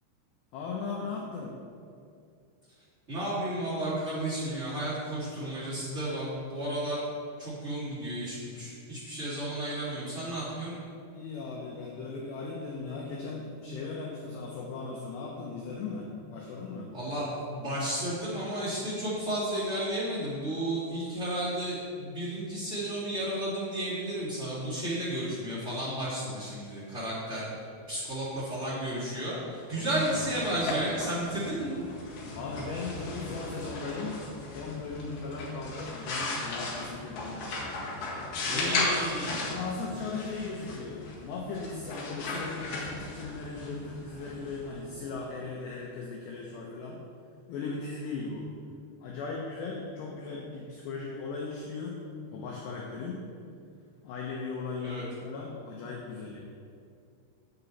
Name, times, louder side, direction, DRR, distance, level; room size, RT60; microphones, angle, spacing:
voice 1, 0.5-1.6 11.1-16.9 29.7-30.1 32.3-34.2 34.5-37.9 38.4-39.0 39.5-47.0 47.5-48.5 49.0-52.0 52.3-53.2 54.0-56.4, left 4 dB, 80° left, -2 dB, 2.5 m, -38 dB
voice 2, 3.1-7.0 7.4-10.8 16.9-31.8 38.4-39.4 54.8-55.0, right 1 dB, 50° right, -10 dB, 0.8 m, -33 dB
sound 1, 29.6-45.3, left 2 dB, 60° left, 3.1 m, -36 dB
9.0 x 8.1 x 4.1 m, 2.4 s
omnidirectional pair, 5.9 m